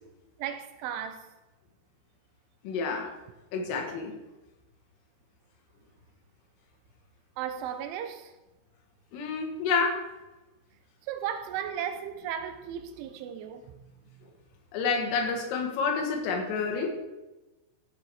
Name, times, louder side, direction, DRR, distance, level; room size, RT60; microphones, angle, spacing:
voice 1, 0.4-1.3 7.4-8.3 11.0-13.8, right 9 dB, 80° right, 3.1 m, -35 dB
voice 2, 2.6-3.1 3.5-4.1 9.1-10.0 14.7-17.0, left 4 dB, 85° left, 4.4 m, -29 dB
15.0 x 7.1 x 4.8 m
omnidirectional pair, 5.8 m